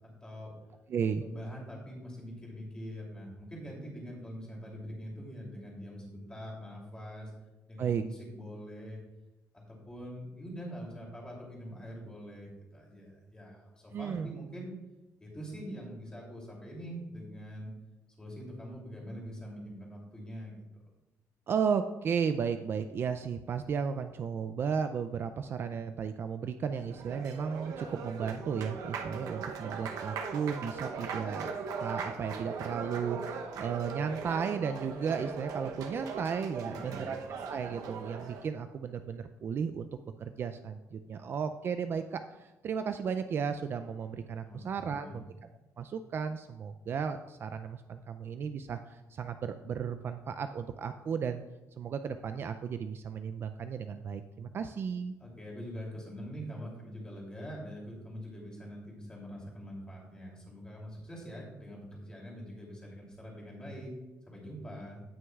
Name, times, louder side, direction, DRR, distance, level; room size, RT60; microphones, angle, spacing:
voice 1, 0.2-0.5 1.2-7.3 7.7-9.0 9.5-14.7 15.2-17.7 18.2-20.6 36.5-37.1 44.4-45.3 55.2-63.9 64.3-65.0, equal, 15° left, -3 dB, 2.8 m, -44 dB
voice 2, 0.9-1.2 7.8-8.0 13.9-14.3 21.5-31.5 31.8-39.9 40.2-45.2 45.8-51.4 51.8-55.1, right 6 dB, 40° right, 9 dB, 0.3 m, -34 dB
Applause, 26.7-38.5, right 5 dB, 70° right, 0.8 m, -39 dB
17.0 x 6.2 x 2.4 m, 1.0 s
cardioid pair, 155°, 6 cm